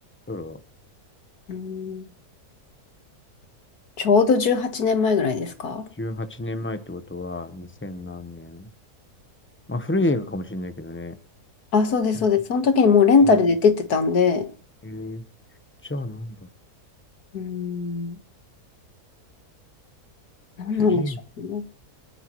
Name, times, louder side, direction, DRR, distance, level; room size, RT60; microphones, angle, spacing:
voice 1, 1.5-2.0 4.0-5.8 11.7-14.5 17.3-18.2 20.6-21.6, left 5 dB, 75° left, 2.0 m, -20 dB
voice 2, 6.0-8.7 9.7-11.1 14.8-15.2 15.9-16.3 20.8-21.2, left 1 dB, 10° left, 0.7 m, -30 dB
28.5 x 10.0 x 3.1 m
omnidirectional pair, 1.7 m